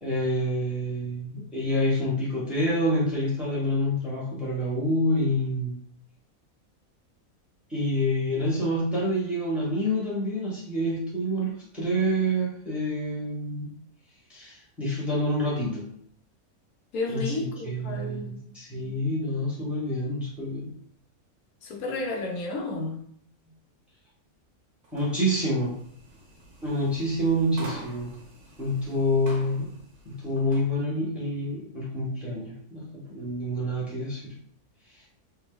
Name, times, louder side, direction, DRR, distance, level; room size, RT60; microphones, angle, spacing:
voice 1, 0.0-5.8 7.7-13.8 14.3-15.9 17.1-20.7 24.9-25.7 26.6-28.1 28.6-29.7 30.0-34.4, equal, ahead, -6 dB, 1.1 m, -27 dB
voice 2, 16.9-18.4 21.6-23.0, left 2 dB, 75° left, 1 dB, 1.2 m, -32 dB
sound 1, 24.8-30.7, equal, 50° right, 1.3 m, -47 dB
3.3 x 2.6 x 3.8 m, 0.63 s
omnidirectional pair, 1.6 m